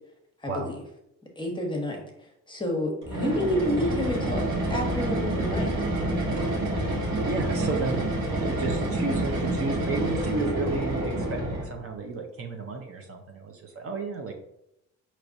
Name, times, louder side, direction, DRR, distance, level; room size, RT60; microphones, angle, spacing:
voice 1, 0.4-0.8 1.4-2.0 2.5-4.4 4.7-5.7, left 1 dB, 15° left, 1 dB, 1.0 m, -29 dB
sound 1, 3.0-11.8, right 1 dB, 75° right, 1.4 m, -28 dB
voice 2, 7.3-8.1 8.4-14.3, right 3 dB, 50° right, 3 dB, 0.7 m, -32 dB
4.6 x 3.0 x 2.6 m, 0.81 s
cardioid pair, 90°, 30 cm